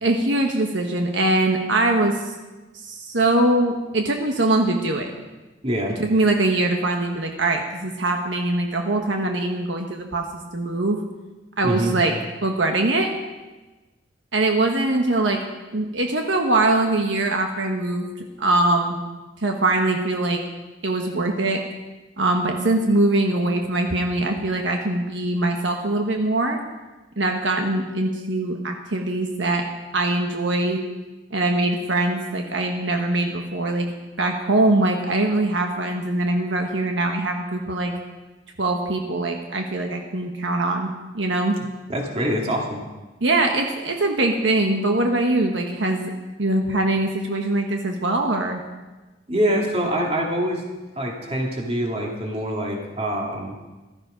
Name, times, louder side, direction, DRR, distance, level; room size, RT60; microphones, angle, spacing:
voice 1, 0.0-2.3 2.8-5.1 6.0-10.2 10.5-11.0 11.6-12.1 12.4-13.1 14.3-15.4 15.7-18.1 18.4-19.0 19.4-20.4 20.8-21.6 22.2-26.6 27.2-29.7 29.9-30.8 31.3-33.9 34.2-37.9 38.6-40.9 41.1-41.6 43.2-48.6, right 2 dB, 75° right, 3 dB, 1.3 m, -22 dB
voice 2, 5.6-6.0 11.6-11.9 41.9-42.8 49.3-50.6 51.0-53.5, equal, 35° right, 0 dB, 2.4 m, -24 dB
15.5 x 13.0 x 5.1 m, 1.2 s
head